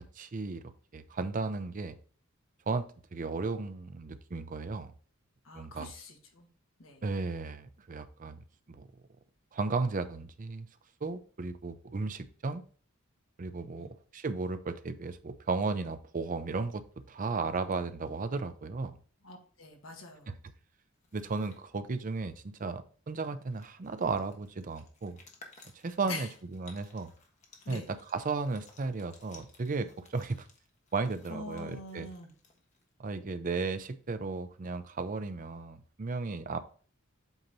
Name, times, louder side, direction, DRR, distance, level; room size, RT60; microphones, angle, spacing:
voice 1, 0.2-0.6 0.9-2.0 2.7-4.9 5.5-5.9 7.0-8.4 8.7-8.9 9.5-10.7 11.0-12.6 13.4-16.8 17.1-18.9 20.3-20.4 21.1-25.2 25.7-27.1 27.7-30.5 30.9-32.1 33.0-36.6, right 4 dB, 40° right, 11 dB, 0.5 m, -35 dB
voice 2, 5.4-6.5 6.8-7.0 13.7-13.9 19.2-20.3 26.0-26.3 27.6-27.9 31.3-32.3, left 2 dB, 70° left, 2 dB, 1.5 m, -44 dB
sound 1, 20.9-21.6 23.1-23.2 23.4-32.9, left 3 dB, 35° left, 1.2 m, -59 dB
8.0 x 2.9 x 5.2 m, 0.42 s
head